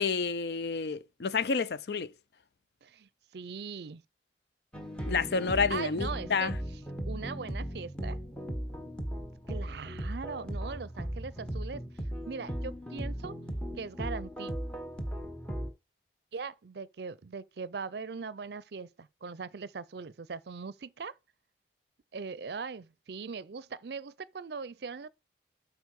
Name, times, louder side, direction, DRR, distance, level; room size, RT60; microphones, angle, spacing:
voice 1, 0.0-2.1 5.1-6.6, left 5 dB, 65° left, 0.5 m, -29 dB
voice 2, 2.8-4.0 5.7-6.5 7.1-8.2 9.5-11.8 12.3-13.3 13.7-14.5 16.3-21.1 22.1-25.1, right 5 dB, 65° right, 0.5 m, -40 dB
sound 1, 4.7-15.7, equal, 5° left, 1.1 m, -37 dB
8.2 x 4.8 x 4.8 m
head